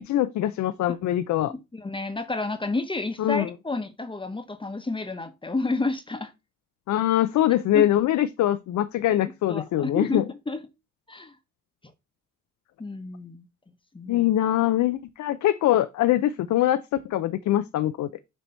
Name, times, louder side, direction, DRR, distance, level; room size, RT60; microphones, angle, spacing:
voice 1, 0.0-1.5 3.2-3.5 6.9-10.2 14.1-18.1, left 13 dB, 70° left, 0.6 m, -23 dB
voice 2, 1.5-6.3 7.7-7.8 9.1-9.2 9.5-10.6 11.1-11.4 12.8-13.4 13.9-14.3, left 3 dB, 15° left, 1.0 m, -30 dB
6.9 x 3.0 x 5.6 m
cardioid pair, 90°, 30 cm